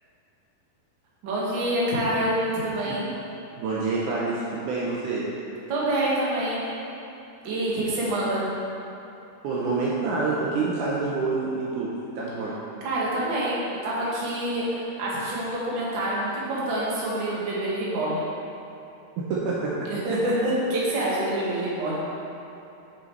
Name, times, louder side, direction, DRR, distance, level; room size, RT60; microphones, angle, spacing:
voice 1, 1.2-3.0 5.7-6.6 7.4-8.4 12.8-18.2 19.8-22.0, right 1 dB, 55° right, -7 dB, 1.3 m, -26 dB
voice 2, 3.5-5.3 9.4-11.9 12.2-12.6 19.3-19.9, right 3 dB, 90° right, -6 dB, 1.8 m, -27 dB
8.0 x 6.5 x 4.6 m, 2.8 s
omnidirectional pair, 4.7 m